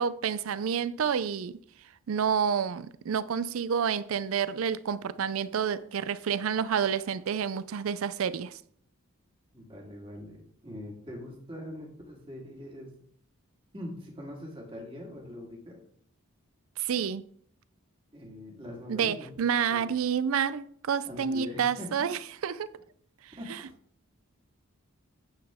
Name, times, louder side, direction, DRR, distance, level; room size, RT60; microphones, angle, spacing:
voice 1, 0.0-1.6 2.1-8.6 16.8-17.2 18.9-22.7, right 7 dB, 75° right, 0.4 m, -29 dB
voice 2, 9.5-12.9 13.7-15.8 18.1-19.3 19.7-19.9 21.1-21.9 23.4-23.7, left 1 dB, 25° right, 2.0 m, -42 dB
9.6 x 8.0 x 3.6 m
head